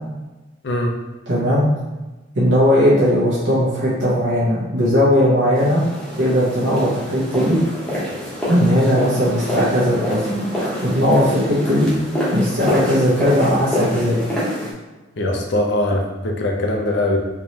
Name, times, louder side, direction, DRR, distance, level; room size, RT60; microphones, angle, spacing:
voice 1, 0.6-0.9 15.2-17.2, left 1 dB, 55° left, 0 dB, 0.6 m, -21 dB
voice 2, 1.3-1.6 2.3-5.8 6.2-7.6 8.5-10.2 10.8-11.9 12.3-14.2, equal, 60° right, -9 dB, 1.0 m, -17 dB
sound 1, 5.5-14.7, left 1 dB, 5° left, 0.9 m, -26 dB
3.6 x 3.1 x 2.9 m, 1.1 s
head